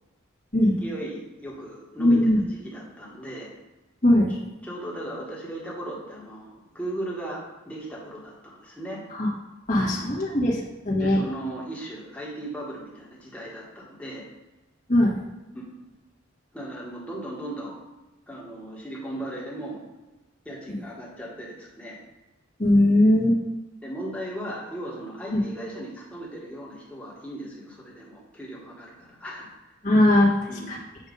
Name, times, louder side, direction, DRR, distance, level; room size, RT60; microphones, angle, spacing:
voice 1, 0.6-3.5 4.3-4.4 4.6-9.0 9.7-10.1 10.9-14.2 16.5-17.7 18.3-19.8 20.4-22.0 23.8-29.5 30.5-30.7, right 1 dB, 5° left, -5 dB, 1.5 m, -37 dB
voice 2, 2.0-2.4 4.0-4.3 9.1-9.3 9.7-10.6 10.8-11.2 14.9-15.1 20.7-20.8 22.6-23.4 25.3-25.4 29.8-30.3 30.7-30.8, left 1 dB, 40° left, -5 dB, 1.5 m, -19 dB
7.0 x 2.7 x 5.3 m, 1.1 s
head